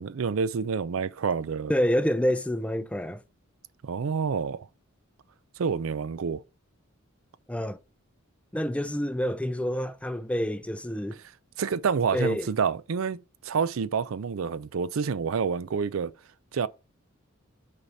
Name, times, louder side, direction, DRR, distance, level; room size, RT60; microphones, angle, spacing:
voice 1, 0.0-1.7 3.8-4.7 5.6-6.4 11.6-16.1 16.5-16.7, right 6 dB, 70° right, 0.5 m, -28 dB
voice 2, 1.7-3.2 7.5-7.8 8.5-11.2 12.1-12.5, equal, 5° left, 0.5 m, -27 dB
6.4 x 4.2 x 6.0 m
head